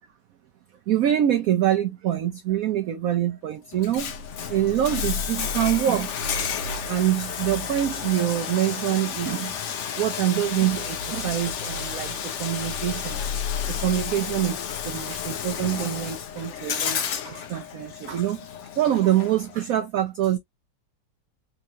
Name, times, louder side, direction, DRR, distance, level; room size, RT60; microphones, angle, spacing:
voice 1, 0.9-4.1 4.5-6.2 6.9-9.6 10.0-13.2 13.6-18.5 18.8-20.4, right 12 dB, 65° right, 0.9 m, -25 dB
Bathtub (filling or washing), 3.7-19.7, left 8 dB, 65° left, 0.7 m, -32 dB
sound 1, 4.0-16.6, left 4 dB, 85° left, 1.3 m, -37 dB
3.7 x 3.0 x 2.5 m
omnidirectional pair, 1.9 m